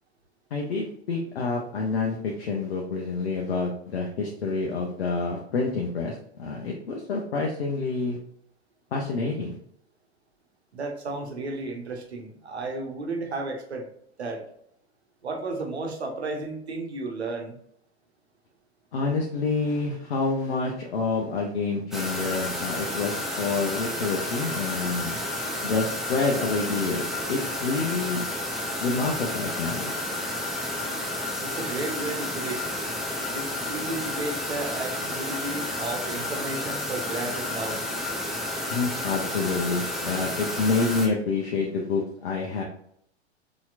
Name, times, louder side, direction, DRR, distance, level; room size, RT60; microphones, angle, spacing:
voice 1, 0.5-8.2 8.9-9.6 18.9-25.2 25.6-28.2 28.8-29.9 38.7-42.6, left 4 dB, 60° left, -1 dB, 0.8 m, -28 dB
voice 2, 10.7-13.9 14.2-14.4 15.2-17.5 31.4-32.6 33.3-37.8, right 2 dB, 75° right, 2 dB, 1.0 m, -33 dB
sound 1, 21.9-41.1, left 1 dB, ahead, 0.6 m, -31 dB
4.2 x 3.0 x 2.4 m, 0.67 s
figure-of-eight pair, 95°, 33 cm